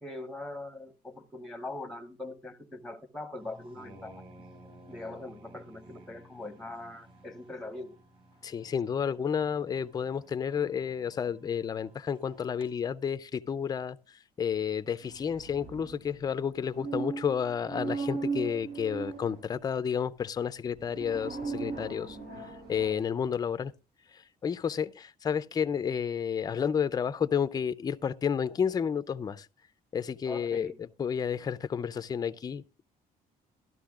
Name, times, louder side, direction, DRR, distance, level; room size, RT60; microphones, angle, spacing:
voice 1, 0.0-4.2 4.9-8.0 22.9-23.1 30.2-30.8, left 2 dB, ahead, 0.9 m, -42 dB
sound 1, 3.4-12.7, right 1 dB, 35° right, 4.3 m, -55 dB
voice 2, 8.4-14.0 14.4-22.2 22.7-23.7 24.1-29.5 29.9-32.8, left 7 dB, 25° left, 0.4 m, -31 dB
sound 2, 15.0-19.6 20.7-22.9, right 4 dB, 80° right, 7.3 m, -37 dB
13.0 x 12.5 x 2.4 m
cardioid pair, 150°, 16 cm